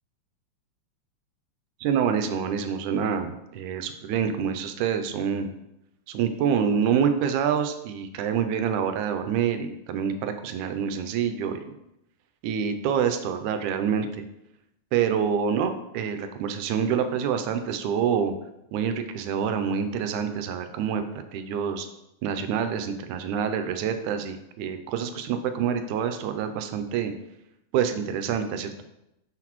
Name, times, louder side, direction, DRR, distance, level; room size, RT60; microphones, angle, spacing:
voice 1, 1.8-5.5 6.1-11.7 12.4-14.3 14.9-18.3 18.7-21.0 21.3-21.9 22.2-27.1 27.7-28.9, right 7 dB, 85° right, 8 dB, 2.0 m, -26 dB
6.5 x 5.8 x 3.0 m, 0.85 s
omnidirectional pair, 3.4 m